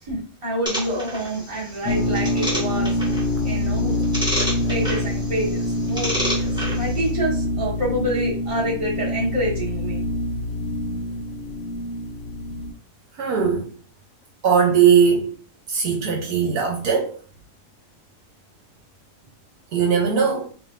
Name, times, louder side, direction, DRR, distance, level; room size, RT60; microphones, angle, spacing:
voice 1, 0.0-2.9 3.4-4.1 4.7-10.3, right 1 dB, 20° right, 1.5 m, -27 dB
sound 1, 0.7-7.1, equal, 5° right, 1.0 m, -30 dB
sound 2, 1.8-12.7, left 1 dB, 85° left, 1.2 m, -25 dB
voice 2, 13.2-13.7 14.4-15.3 15.7-17.2 19.7-20.5, right 6 dB, 75° right, 1.3 m, -19 dB
4.7 x 2.7 x 2.4 m
omnidirectional pair, 1.7 m